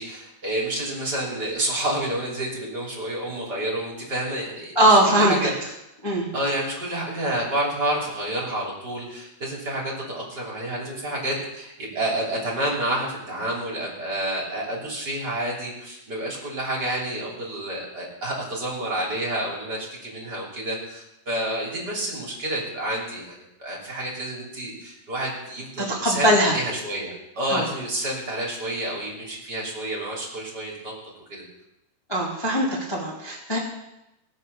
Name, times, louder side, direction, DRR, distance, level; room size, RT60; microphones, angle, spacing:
voice 1, 0.0-5.5 6.3-26.3 26.5-30.9 31.3-31.4, right 1 dB, 25° right, -3 dB, 2.9 m, -29 dB
voice 2, 4.7-5.4 6.0-6.3 25.8-26.6 27.5-27.6 32.1-33.6, right 1 dB, 15° left, -5 dB, 0.9 m, -20 dB
19.0 x 6.5 x 6.8 m, 0.88 s
omnidirectional pair, 5.0 m